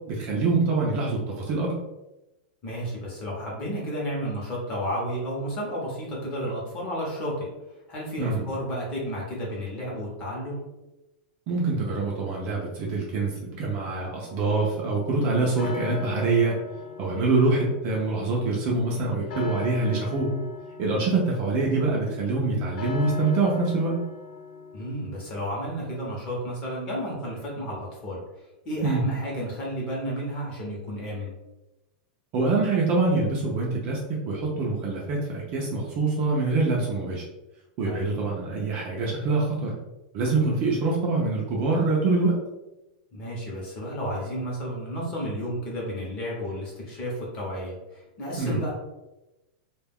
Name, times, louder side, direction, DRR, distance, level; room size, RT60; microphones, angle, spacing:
voice 1, 0.1-1.7 8.2-8.5 11.5-16.5 17.0-20.3 20.8-24.0 28.8-29.0 32.3-37.2 37.8-39.7 40.1-42.4 48.4-48.6, right 3 dB, 25° right, -3 dB, 0.4 m, -25 dB
voice 2, 2.6-7.5 7.9-10.6 17.1-17.3 20.8-21.0 24.7-28.2 28.6-31.3 37.8-38.1 43.1-48.7, equal, 20° left, -4 dB, 0.7 m, -32 dB
sound 1, 14.3-25.5, left 6 dB, 85° left, 0.7 m, -40 dB
2.2 x 2.2 x 3.4 m, 0.98 s
supercardioid pair, 180°, 5 cm